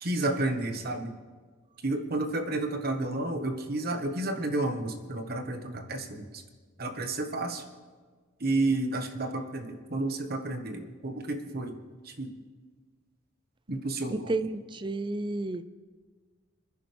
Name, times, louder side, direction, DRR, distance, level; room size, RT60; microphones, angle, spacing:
voice 1, 0.0-1.1 1.8-6.4 6.8-7.6 8.4-11.8 12.0-12.3 13.7-14.4, right 2 dB, 50° right, 5 dB, 1.3 m, -31 dB
voice 2, 14.3-15.6, right 2 dB, 25° right, 13 dB, 0.4 m, -31 dB
27.0 x 10.0 x 3.4 m, 1.5 s
head